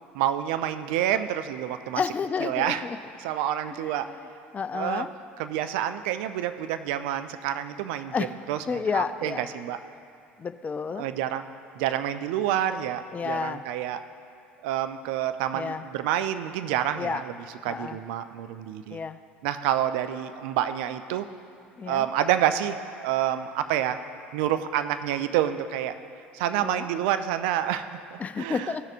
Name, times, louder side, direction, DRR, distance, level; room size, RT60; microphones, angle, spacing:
voice 1, 0.1-2.0 2.4-2.8 3.2-4.1 4.7-5.1 5.4-8.1 8.5-9.8 11.0-11.5 11.8-14.0 14.6-17.2 17.6-19.0 19.4-21.3 21.9-22.8 23.0-24.0 24.3-25.9 26.3-28.7, right 11 dB, 65° right, 10 dB, 0.4 m, -28 dB
voice 2, 1.9-3.0 3.7-4.3 4.5-5.1 8.1-8.3 8.7-9.4 10.4-11.1 13.1-13.6 15.5-15.9 16.9-17.2 17.7-18.0 18.9-19.2 21.8-22.0 26.6-26.9 28.2-28.9, left 5 dB, 25° left, 11 dB, 0.4 m, -31 dB
15.5 x 6.4 x 2.5 m, 2.5 s
figure-of-eight pair, 65°, 6 cm